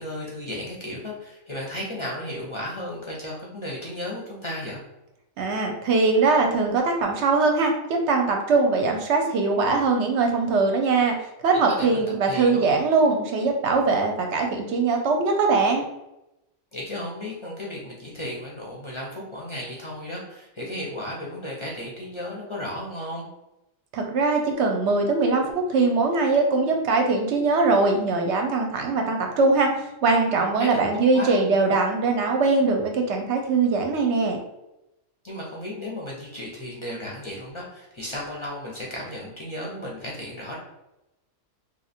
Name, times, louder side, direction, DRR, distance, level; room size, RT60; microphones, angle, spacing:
voice 1, 0.0-4.8 11.5-12.7 16.7-23.3 30.6-31.4 35.2-40.6, left 1 dB, 35° left, -3 dB, 0.5 m, -34 dB
voice 2, 5.4-11.2 11.4-15.9 23.9-29.7 30.0-34.4, right 3 dB, 65° right, 3 dB, 0.8 m, -21 dB
2.9 x 2.3 x 4.1 m, 0.90 s
omnidirectional pair, 1.4 m